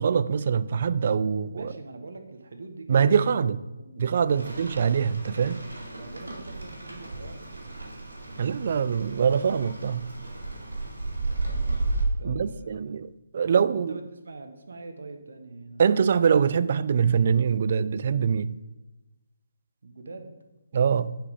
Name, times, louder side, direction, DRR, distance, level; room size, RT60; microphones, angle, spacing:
voice 1, 0.0-1.7 2.9-3.6 4.0-5.6 8.4-10.1 12.2-13.1 13.3-13.9 15.8-18.5 20.7-21.2, right 7 dB, 45° right, 0.3 m, -23 dB
voice 2, 1.5-3.4 3.8-4.6 5.7-7.7 12.2-12.9 13.7-16.2 19.8-20.4, right 3 dB, 65° right, 1.0 m, -43 dB
Rain, 4.3-12.0, right 2 dB, 80° right, 2.2 m, -34 dB
6.9 x 4.8 x 5.0 m
figure-of-eight pair, 145°, 0 cm